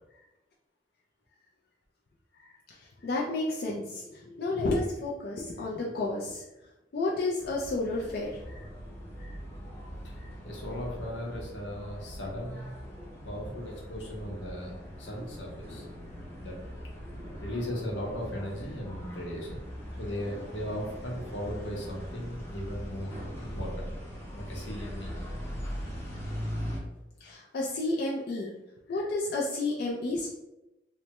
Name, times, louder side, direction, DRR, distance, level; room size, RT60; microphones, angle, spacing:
voice 1, 2.4-2.8 3.0-6.4 6.9-8.7 9.2-9.4 10.2-10.3 27.2-28.5 28.9-30.3, left 2 dB, 55° left, -4 dB, 0.4 m, -31 dB
sound 1, 7.4-26.8, equal, 15° left, 0.6 m, -41 dB
voice 2, 10.4-12.7 13.2-15.8 16.4-16.6 17.4-19.6 20.0-23.1 23.4-23.9 24.3-25.1, equal, 85° left, -1 dB, 0.8 m, -37 dB
3.2 x 2.1 x 2.9 m, 0.95 s
head